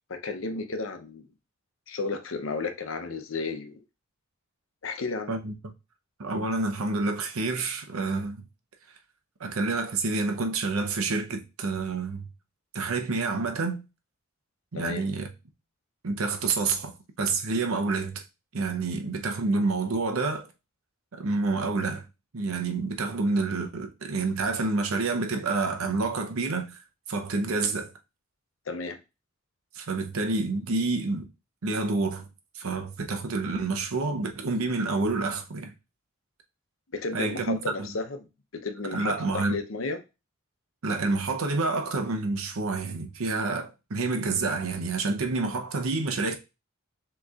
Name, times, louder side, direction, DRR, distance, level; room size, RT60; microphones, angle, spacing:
voice 1, 0.1-1.3 1.9-3.8 4.8-5.3 14.7-15.1 28.7-29.0 36.9-38.3 38.5-40.0, left 3 dB, 70° left, 0.7 m, -33 dB
voice 2, 6.2-8.4 9.4-12.3 12.7-13.8 14.7-15.3 16.0-18.2 18.5-20.5 21.1-22.0 22.3-26.8 27.1-27.9 29.7-31.3 31.6-32.3 32.6-35.7 37.1-37.9 38.9-39.6 40.8-46.4, right 3 dB, 85° right, 0.7 m, -28 dB
6.3 x 3.0 x 2.4 m
head